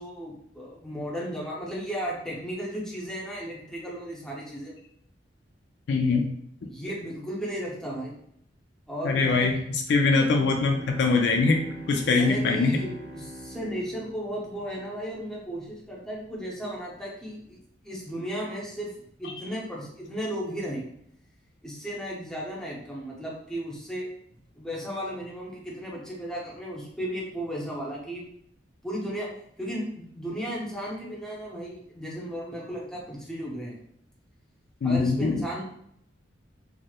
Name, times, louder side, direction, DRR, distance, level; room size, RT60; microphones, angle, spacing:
voice 1, 0.0-4.7 6.7-8.1 8.9-9.5 12.0-18.9 19.2-20.9 21.6-24.1 24.5-28.2 28.8-29.3 29.6-33.8 34.8-35.6, equal, 5° left, -5 dB, 0.6 m, -35 dB
voice 2, 5.9-6.3 9.0-11.6 11.9-12.8 19.2-19.3 34.8-35.5, left 4 dB, 65° left, 3 dB, 0.3 m, -23 dB
Bowed string instrument, 10.3-15.3, right 1 dB, 55° right, 0.8 m, -45 dB
2.8 x 2.0 x 2.3 m, 0.71 s
head